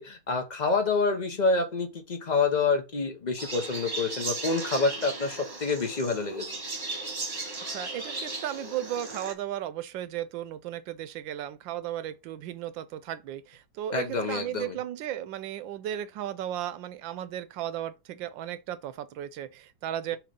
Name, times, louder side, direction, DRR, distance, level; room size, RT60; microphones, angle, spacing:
voice 1, 0.0-6.5 13.9-14.8, left 4 dB, 60° left, 0.4 m, -27 dB
sound 1, 3.4-9.3, right 3 dB, 25° right, 1.2 m, -36 dB
voice 2, 7.7-20.2, right 11 dB, 75° right, 1.3 m, -35 dB
5.9 x 3.1 x 5.1 m
omnidirectional pair, 2.2 m